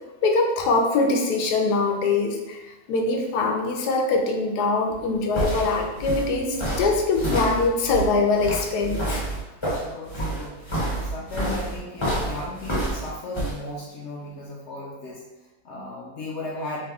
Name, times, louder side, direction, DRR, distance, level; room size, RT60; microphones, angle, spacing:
voice 1, 0.2-2.6 2.9-9.2, left 3 dB, 85° left, 2 dB, 1.2 m, -23 dB
sound 1, 4.9-13.5, right 1 dB, 25° left, 0.7 m, -28 dB
voice 2, 9.7-16.9, left 2 dB, 65° left, -3 dB, 0.7 m, -36 dB
3.4 x 2.7 x 3.5 m, 1.1 s
omnidirectional pair, 1.7 m